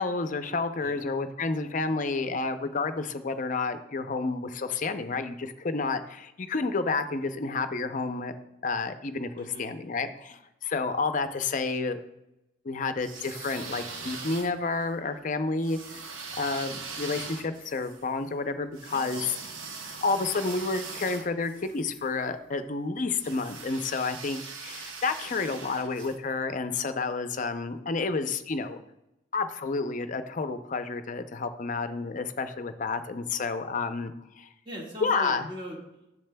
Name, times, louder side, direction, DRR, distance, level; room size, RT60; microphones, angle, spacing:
voice 1, 0.0-8.3 8.6-12.0 12.6-16.0 16.4-19.3 20.0-28.8 29.3-34.5 35.0-35.5, left 4 dB, 40° left, 9 dB, 0.5 m, -30 dB
voice 2, 9.4-9.7 18.9-19.3 34.6-36.1, equal, 25° right, -3 dB, 1.7 m, -41 dB
sound 1, 13.0-14.9 15.6-22.0 23.1-26.2, right 4 dB, 75° right, 0.8 m, -41 dB
11.0 x 7.4 x 2.2 m, 0.88 s
head